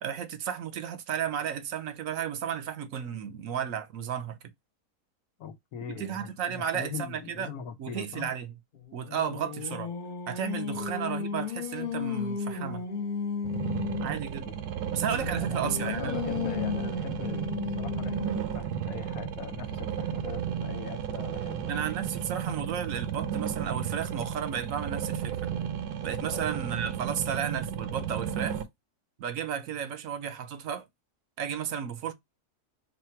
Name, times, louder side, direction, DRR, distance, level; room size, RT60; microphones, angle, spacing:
voice 1, 0.0-4.4 5.9-7.5 7.8-8.5 8.9-9.9 10.3-12.8 14.0-14.5 14.9-16.1 21.7-25.5 26.0-28.6 29.2-30.8 31.4-32.1, right 8 dB, 70° right, 1.0 m, -33 dB
voice 2, 5.4-8.3 10.7-10.9 14.4-14.6 15.3-21.8 26.3-26.5, left 7 dB, 70° left, 1.2 m, -41 dB
Singing, 8.7-14.2 14.8-18.7, left 5 dB, 40° left, 0.9 m, -34 dB
sound 1, 13.4-28.6, right 8 dB, 85° right, 1.2 m, -33 dB
4.2 x 2.2 x 4.2 m
omnidirectional pair, 1.6 m